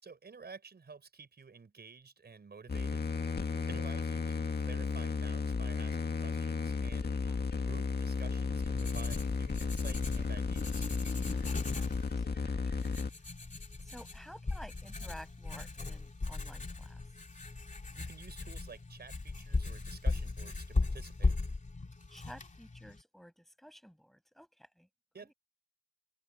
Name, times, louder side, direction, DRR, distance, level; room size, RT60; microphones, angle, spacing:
voice 1, 0.0-3.1 3.7-7.3 7.7-10.9 17.9-21.3 25.1-25.3, right 5 dB, 90° right, 5.1 m, -51 dB
sound 1, 2.7-13.1, left 4 dB, 80° left, 1.9 m, -34 dB
Writing, 8.2-23.0, left 3 dB, 50° left, 2.9 m, -38 dB
voice 2, 11.1-12.9 13.8-17.0 22.1-24.9, equal, ahead, 7.4 m, -53 dB
open air
wide cardioid pair, 70°, 16 cm